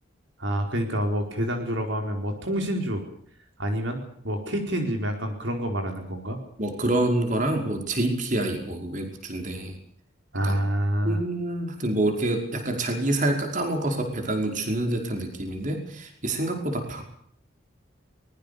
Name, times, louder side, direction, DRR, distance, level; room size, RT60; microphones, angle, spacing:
voice 1, 0.4-3.0 3.6-6.4 10.3-11.2, equal, 65° right, 4 dB, 4.6 m, -27 dB
voice 2, 6.6-9.8 10.4-10.6 11.0-17.0, right 1 dB, 40° right, 4 dB, 5.2 m, -27 dB
24.0 x 21.5 x 6.9 m, 0.64 s
head